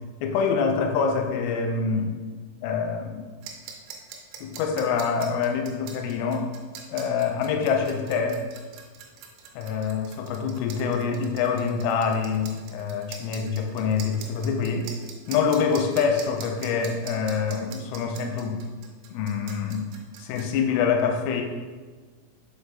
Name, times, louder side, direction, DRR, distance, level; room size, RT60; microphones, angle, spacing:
voice 1, 0.2-2.2 2.6-3.3 4.4-6.5 6.9-8.5 9.6-14.9 15.3-18.6 19.1-19.8 20.2-21.4, left 6 dB, 90° left, 3 dB, 3.2 m, -25 dB
sound 1, 3.4-20.4, right 8 dB, 90° right, 3.3 m, -43 dB
6.6 x 4.6 x 3.4 m, 1.4 s
omnidirectional pair, 5.8 m